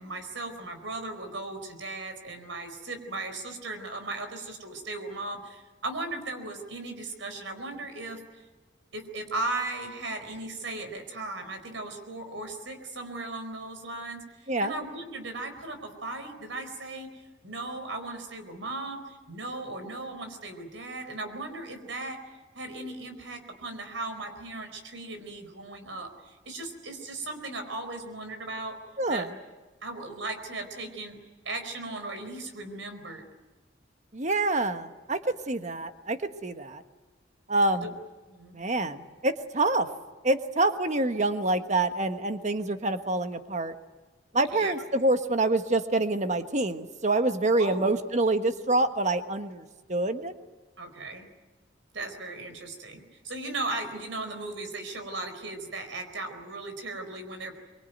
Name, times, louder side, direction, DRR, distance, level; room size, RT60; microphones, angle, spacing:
voice 1, 0.0-8.2 8.9-22.2 22.5-28.8 29.1-29.3 29.8-31.2 31.4-33.2 37.8-37.9 38.3-38.6 44.5-44.7 47.6-47.8 50.8-51.3 51.9-57.6, right 2 dB, 80° right, 7 dB, 4.6 m, -37 dB
voice 2, 29.0-29.3 34.1-36.8 37.5-37.9 38.5-39.9 40.2-43.7 44.3-50.3, right 2 dB, 40° right, 8 dB, 1.4 m, -26 dB
24.0 x 23.5 x 9.3 m, 1.2 s
head